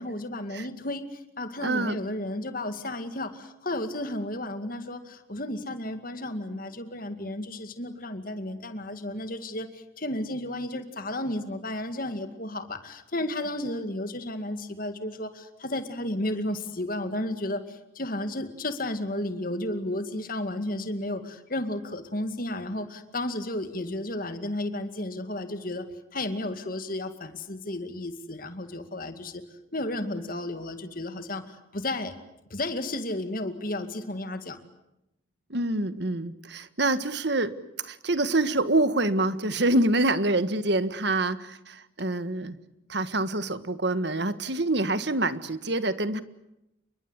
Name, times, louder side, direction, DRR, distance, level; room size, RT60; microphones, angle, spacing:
voice 1, 0.0-29.4 29.7-32.2 32.5-34.6, left 1 dB, 45° left, 9 dB, 2.3 m, -33 dB
voice 2, 1.6-2.0 35.5-42.6 42.9-46.2, right 2 dB, 55° right, 13 dB, 1.6 m, -26 dB
28.5 x 23.5 x 8.2 m, 0.87 s
head